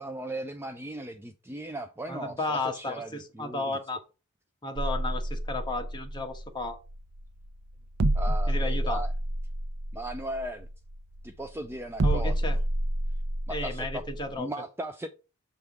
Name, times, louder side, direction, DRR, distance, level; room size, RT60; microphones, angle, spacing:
voice 1, 0.0-3.8 8.1-9.1 9.9-10.7 11.2-12.5 13.5-14.0 14.4-15.1, right 1 dB, 10° right, 0.4 m, -37 dB
voice 2, 2.1-4.0 4.6-6.8 8.5-9.0 12.0-12.6 13.5-14.5, left 2 dB, 20° left, 1.2 m, -33 dB
sound 1, 4.8-14.4, right 1 dB, 75° right, 0.6 m, -29 dB
6.9 x 3.6 x 4.7 m
head